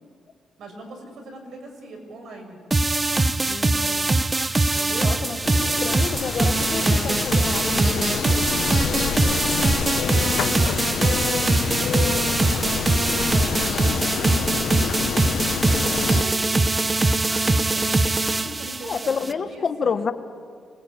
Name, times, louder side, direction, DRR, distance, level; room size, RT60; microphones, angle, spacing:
voice 1, 0.6-2.6 4.6-5.2 9.0-12.1 12.3-12.7 13.3-14.6 15.9-19.9, right 2 dB, 60° right, 3 dB, 5.9 m, -40 dB
sound 1, 2.7-19.3, right 2 dB, 20° right, 0.8 m, -22 dB
voice 2, 3.4-4.1 4.9-8.3 18.8-20.1, left 6 dB, 45° left, 10 dB, 1.1 m, -29 dB
sound 2, 5.4-16.2, left 9 dB, 70° left, 0.6 m, -28 dB
24.5 x 19.5 x 9.1 m, 2.1 s
cardioid pair, 130°, 0 cm